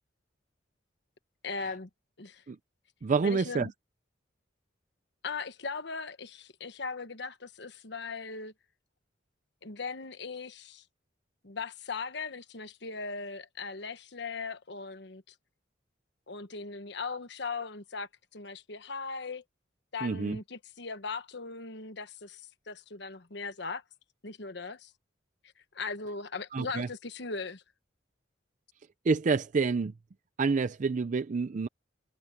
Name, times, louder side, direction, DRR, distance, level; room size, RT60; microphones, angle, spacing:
voice 1, 1.4-1.9 2.2-2.4 3.2-3.7 5.2-8.5 9.6-10.8 11.4-15.3 16.3-19.4 19.9-23.8 24.2-24.9 25.7-27.6, left 4 dB, 65° left, 1.3 m, -39 dB
voice 2, 3.0-3.7 20.0-20.4 26.5-26.9 29.0-29.9 30.4-31.7, right 4 dB, 45° right, 0.4 m, -28 dB
head